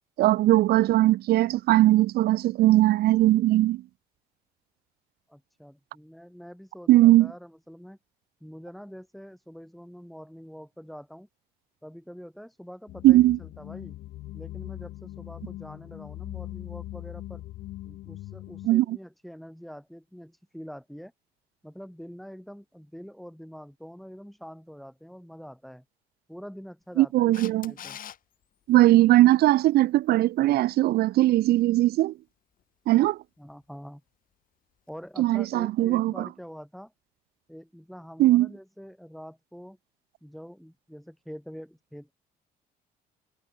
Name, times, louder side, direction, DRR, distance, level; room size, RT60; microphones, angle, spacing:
voice 1, 0.2-3.8 6.9-7.3 13.0-13.4 18.6-19.0 27.0-27.7 28.7-32.1 32.9-33.2 35.2-36.3 38.2-38.5, right 16 dB, 70° right, 0.6 m, -20 dB
voice 2, 5.3-8.0 8.4-11.3 11.8-14.0 14.3-17.4 17.8-21.1 21.6-25.8 26.3-28.0 33.4-34.0 34.9-36.9 37.5-39.8 40.2-42.1, equal, ahead, 7.1 m, -45 dB
sound 1, 12.9-18.7, left 16 dB, 75° left, 2.4 m, -40 dB
Camera, 27.3-28.2 34.9-35.0, left 10 dB, 55° left, 5.0 m, -41 dB
cardioid pair, 110°, 17 cm